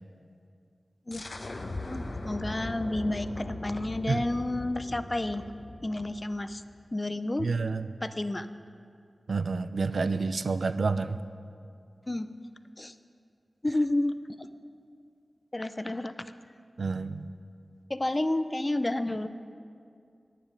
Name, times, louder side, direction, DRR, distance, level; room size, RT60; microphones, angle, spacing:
sound 1, 1.1-6.6, left 2 dB, 50° left, 0.8 m, -39 dB
voice 1, 1.9-5.4 5.8-6.6 6.9-7.5 8.0-8.5 12.1-12.3 12.8-12.9 13.6-14.5 15.5-16.3 17.9-19.3, left 1 dB, 25° left, 11 dB, 0.4 m, -30 dB
voice 2, 7.4-7.9 9.3-11.2 16.8-17.3, right 4 dB, 85° right, 12 dB, 0.3 m, -29 dB
10.0 x 9.5 x 5.2 m, 2.3 s
wide cardioid pair, 90°, 0 cm